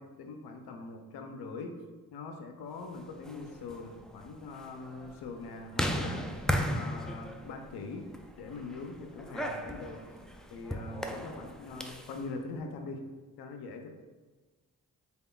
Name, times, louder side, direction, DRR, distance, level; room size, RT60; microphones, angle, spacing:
voice 1, 0.0-1.7 2.1-6.3 6.7-8.1 8.4-10.2 10.5-13.0 13.4-13.9, left 3 dB, 90° left, 4 dB, 0.5 m, -42 dB
sound 1, 3.1-12.2, equal, ahead, 0.3 m, -37 dB
4.2 x 3.6 x 2.3 m, 1.3 s
cardioid pair, 60°, 37 cm